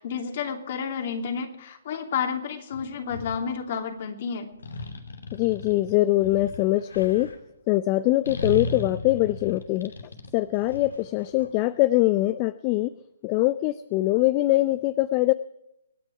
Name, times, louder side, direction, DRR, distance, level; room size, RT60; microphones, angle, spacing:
voice 1, 0.0-4.5, left 6 dB, 45° left, 5 dB, 2.9 m, -31 dB
sound 1, 2.7-3.4 4.6-7.4 8.3-11.5, left 1 dB, 75° left, 2.8 m, -36 dB
voice 2, 5.3-7.3 7.7-9.9 10.3-12.9 13.2-15.3, left 17 dB, 30° left, 16 dB, 0.5 m, -23 dB
26.0 x 9.9 x 4.8 m, 0.82 s
figure-of-eight pair, 140°, 0 cm